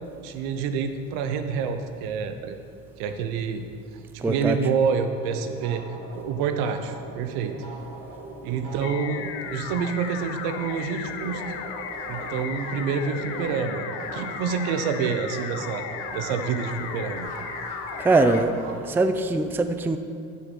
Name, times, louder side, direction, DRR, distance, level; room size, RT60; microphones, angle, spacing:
voice 1, 0.2-2.6 3.0-3.6 4.1-5.8 6.1-7.5 8.4-11.4 12.1-13.9 14.1-15.8 16.1-17.3, right 6 dB, 70° right, 8 dB, 0.8 m, -27 dB
voice 2, 4.2-4.6 18.0-18.5 18.9-20.0, right 3 dB, 5° right, 8 dB, 0.4 m, -21 dB
sound 1, 5.0-10.9 11.1-19.1, right 2 dB, 55° right, 1.6 m, -40 dB
sound 2, 8.8-18.4, left 8 dB, 75° left, 0.7 m, -35 dB
7.4 x 7.4 x 4.2 m, 2.3 s
hypercardioid pair, 70°, 38 cm